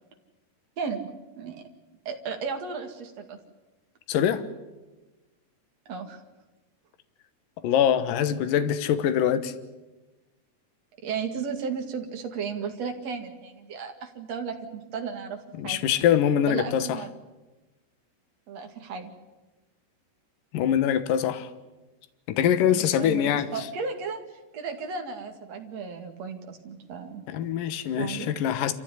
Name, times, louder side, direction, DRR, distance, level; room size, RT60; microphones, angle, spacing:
voice 1, 0.8-1.1 1.4-1.6 2.0-3.4 5.9-6.2 11.0-15.4 15.6-15.8 16.5-17.1 18.5-19.1 22.7-24.2 24.5-27.2 28.0-28.3, right 5 dB, 45° right, 3.0 m, -34 dB
voice 2, 4.1-4.4 7.6-9.5 15.5-17.0 20.5-21.5 22.3-23.7 27.3-28.7, left 9 dB, 65° left, 2.5 m, -24 dB
27.0 x 15.0 x 9.9 m
omnidirectional pair, 4.9 m